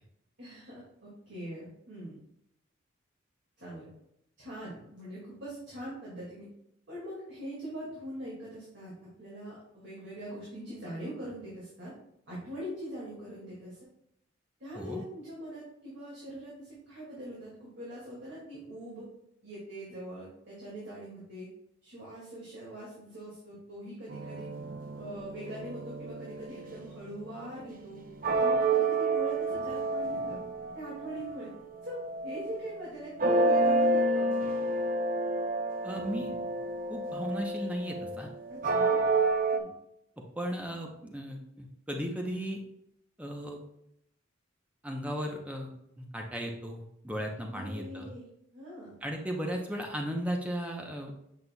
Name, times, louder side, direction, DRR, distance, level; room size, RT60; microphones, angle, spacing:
voice 1, 0.4-2.2 3.6-3.9 4.4-6.5 6.9-8.9 9.2-11.9 12.3-13.9 14.6-19.1 19.4-21.5 21.8-24.5 25.0-28.0 28.4-30.4 30.7-31.5 31.8-34.3 38.5-39.0 39.5-39.7 47.5-48.3 48.5-48.9, right 1 dB, 55° right, -7 dB, 2.1 m, -42 dB
sound 1, 24.1-31.4 31.8-32.8 33.2-39.6, right 2 dB, 40° right, 0.6 m, -30 dB
voice 2, 35.8-36.3 36.9-38.3 40.4-42.6 43.2-43.6 44.8-45.7 46.0-48.1 49.0-51.1, equal, 5° right, 1 dB, 0.7 m, -36 dB
8.0 x 5.6 x 2.3 m, 0.77 s
head